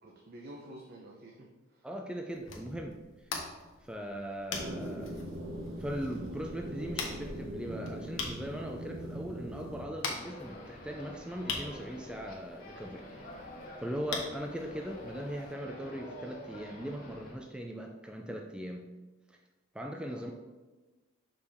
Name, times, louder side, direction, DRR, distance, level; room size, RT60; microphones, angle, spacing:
voice 1, 0.0-1.9 15.1-15.2 20.0-20.3, right 1 dB, 50° right, -1 dB, 0.7 m, -50 dB
voice 2, 1.8-3.0 3.8-5.2 5.8-13.4 13.8-18.9 19.3-19.4 19.7-20.3, equal, 5° right, 2 dB, 0.4 m, -40 dB
sound 1, 2.3-15.5, left 4 dB, 70° left, 1.1 m, -43 dB
sound 2, 4.5-9.9, right 1 dB, 80° right, 1.0 m, -41 dB
sound 3, 10.2-17.3, left 1 dB, 45° left, 1.3 m, -47 dB
6.4 x 5.2 x 3.5 m, 1.2 s
head